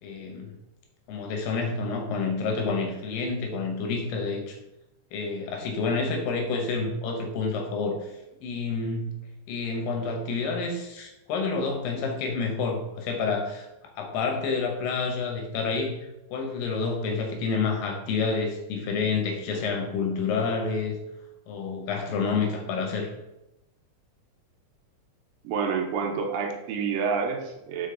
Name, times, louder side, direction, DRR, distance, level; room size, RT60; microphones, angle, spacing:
voice 1, 0.0-0.5 1.1-4.6 5.1-8.1 8.4-13.7 14.0-21.0 21.5-23.1, left 4 dB, 90° left, 3 dB, 2.7 m, -29 dB
voice 2, 25.4-27.9, right 5 dB, 90° right, 3 dB, 2.5 m, -28 dB
5.1 x 5.1 x 3.7 m, 0.90 s
omnidirectional pair, 3.9 m